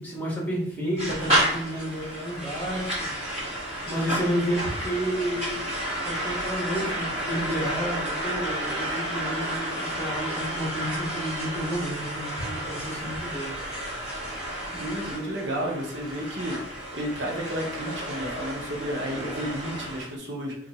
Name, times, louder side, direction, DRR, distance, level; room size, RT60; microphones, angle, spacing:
voice 1, 0.0-3.1 3.9-5.7 6.0-13.5, equal, 10° left, -5 dB, 1.0 m, -31 dB
sound 1, 1.0-20.1, right 1 dB, 35° right, 1.1 m, -31 dB
voice 2, 14.7-16.6 16.9-20.6, equal, 70° right, -1 dB, 0.9 m, -32 dB
2.9 x 2.5 x 4.1 m, 0.70 s
head